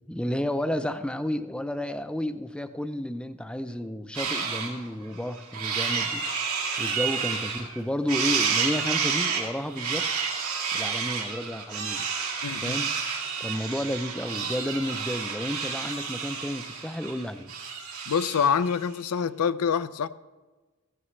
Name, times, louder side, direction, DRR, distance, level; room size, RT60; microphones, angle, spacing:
voice 1, 0.1-6.3 6.8-10.1 10.7-12.1 12.6-12.9 13.4-17.5, left 1 dB, 5° left, 0.4 m, -31 dB
sound 1, 4.1-4.7 5.1-7.8 8.1-18.5, right 6 dB, 80° right, 2.5 m, -30 dB
voice 2, 12.4-12.8 18.1-20.1, left 6 dB, 90° left, 0.5 m, -26 dB
15.5 x 15.5 x 3.2 m
head